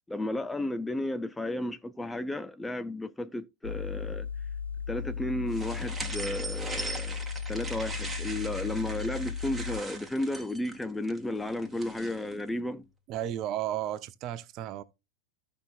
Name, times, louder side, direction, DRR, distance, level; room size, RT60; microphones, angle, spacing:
voice 1, 0.1-4.3 4.9-7.2 7.5-12.9, left 1 dB, 5° left, 0.5 m, -33 dB
sound 1, 3.6-9.8, left 6 dB, 75° left, 0.6 m, -36 dB
sound 2, 5.5-12.3, right 3 dB, 10° right, 1.7 m, -40 dB
voice 2, 13.1-14.8, right 12 dB, 35° right, 0.8 m, -33 dB
14.5 x 5.6 x 2.4 m
figure-of-eight pair, 90°, 0 cm